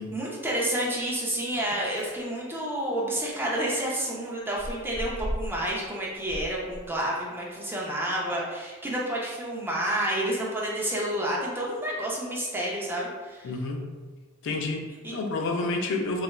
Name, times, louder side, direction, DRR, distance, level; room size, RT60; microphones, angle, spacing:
voice 1, 0.1-13.5 15.0-15.1, right 1 dB, 10° right, -4 dB, 0.5 m, -29 dB
Chewing mastication, 1.9-2.2 2.8-2.9 3.1-3.3 3.7-3.8 4.2-5.7 6.0-7.3 7.6-7.7, equal, 35° left, 1.3 m, -37 dB
voice 2, 13.4-13.9 14.4-16.2, left 3 dB, 65° left, 3 dB, 0.3 m, -29 dB
3.0 x 2.3 x 2.2 m, 1.3 s
head